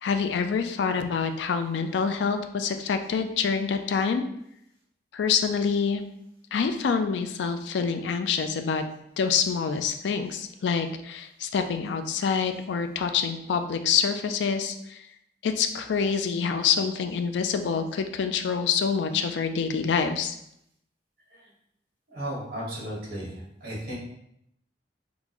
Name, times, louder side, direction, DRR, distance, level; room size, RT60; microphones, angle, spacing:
voice 1, 0.0-4.2 5.1-6.0 6.5-8.8 9.2-15.1 15.4-20.4, left 6 dB, 75° left, 7 dB, 0.3 m, -26 dB
voice 2, 22.1-23.3 23.6-23.9, equal, 60° right, -5 dB, 1.4 m, -34 dB
3.8 x 2.5 x 2.9 m, 0.76 s
head